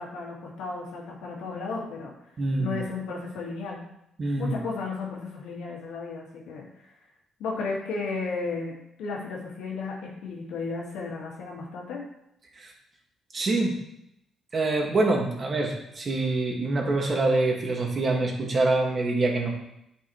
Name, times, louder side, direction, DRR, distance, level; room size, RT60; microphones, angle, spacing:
voice 1, 0.0-2.1 2.6-3.8 4.4-6.9 7.4-12.0, left 4 dB, 90° left, -2 dB, 1.9 m, -34 dB
voice 2, 2.4-2.8 4.2-4.6 12.5-12.7 13.3-13.8 14.5-19.5, right 2 dB, 40° right, 0 dB, 1.9 m, -25 dB
9.6 x 5.4 x 3.2 m, 0.79 s
cardioid pair, 90°, 0 cm